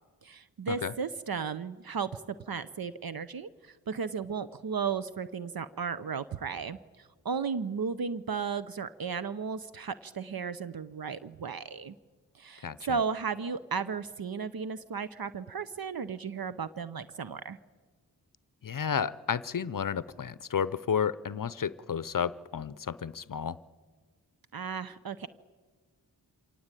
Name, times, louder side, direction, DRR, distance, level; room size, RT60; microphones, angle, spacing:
voice 1, 0.2-12.0 12.3-17.6 24.5-25.3, right 6 dB, 60° right, 14 dB, 0.8 m, -35 dB
voice 2, 12.6-13.0 18.6-23.6, left 7 dB, 55° left, 18 dB, 0.6 m, -32 dB
25.0 x 18.0 x 9.0 m, 1.5 s
wide cardioid pair, 60°, 39 cm